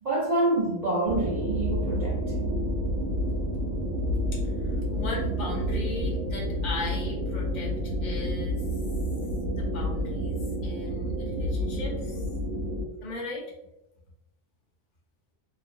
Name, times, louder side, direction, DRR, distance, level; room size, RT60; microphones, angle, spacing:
voice 1, 0.0-2.2, right 2 dB, 50° right, -6 dB, 0.5 m, -27 dB
sound 1, 1.1-12.8, equal, 80° right, 1.0 m, -29 dB
voice 2, 4.6-8.6 9.6-12.3 13.0-13.4, left 1 dB, 45° left, -4 dB, 0.7 m, -37 dB
2.5 x 2.0 x 2.5 m, 0.94 s
omnidirectional pair, 1.2 m